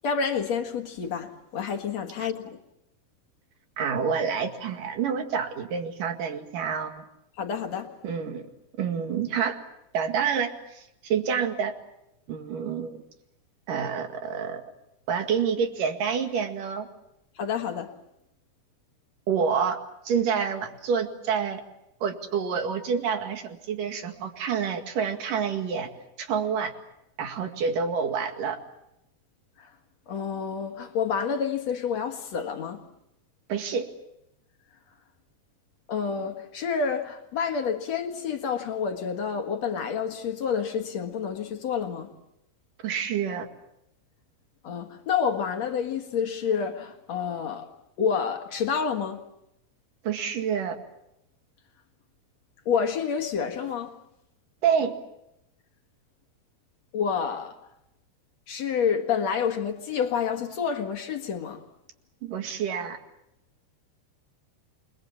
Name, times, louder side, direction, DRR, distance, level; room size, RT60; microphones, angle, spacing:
voice 1, 0.0-2.6 7.4-7.9 17.4-17.9 29.6-29.7 30.1-32.8 35.9-42.1 44.6-47.7 48.0-49.2 52.7-53.9 56.9-57.6 58.5-61.6, left 6 dB, 50° left, 2.4 m, -28 dB
voice 2, 3.8-6.9 8.0-8.5 8.8-9.6 9.9-11.7 12.3-13.0 13.7-14.6 15.1-16.9 19.3-19.8 20.0-21.6 22.0-25.9 26.2-26.7 27.2-28.6 33.5-33.9 42.8-43.5 50.0-50.8 54.6-54.9 62.2-63.0, right 6 dB, 60° right, 3.4 m, -28 dB
29.0 x 22.0 x 7.4 m
omnidirectional pair, 4.5 m